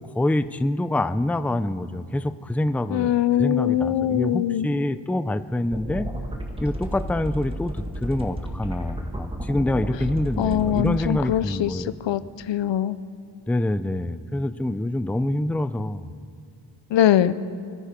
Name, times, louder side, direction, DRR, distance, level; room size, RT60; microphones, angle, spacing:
voice 1, 0.1-3.1 3.4-6.1 6.6-11.9 13.5-16.0, left 1 dB, 5° left, 12 dB, 0.5 m, -26 dB
voice 2, 2.9-4.7 10.4-12.2 12.5-13.0 16.9-17.3, left 11 dB, 70° left, 15 dB, 0.7 m, -22 dB
sound 1, 5.7-11.1, right 1 dB, 10° right, 2.1 m, -32 dB
25.0 x 10.5 x 5.2 m, 2.4 s
cardioid pair, 65°, 45 cm